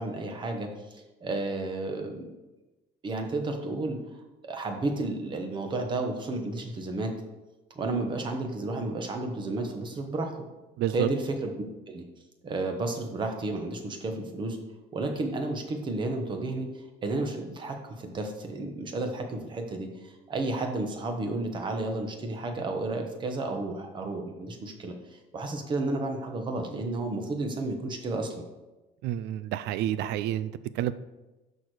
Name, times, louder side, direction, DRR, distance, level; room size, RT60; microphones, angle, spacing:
voice 1, 0.0-2.3 3.0-4.0 4.4-7.1 7.7-10.3 10.9-11.5 11.9-12.0 12.4-14.6 14.9-28.4, right 2 dB, 25° right, 4 dB, 1.1 m, -32 dB
voice 2, 10.8-11.1 29.0-30.5 30.8-30.9, right 12 dB, 75° right, 15 dB, 0.5 m, -29 dB
12.5 x 4.6 x 4.9 m, 1.1 s
cardioid pair, 175°, 18 cm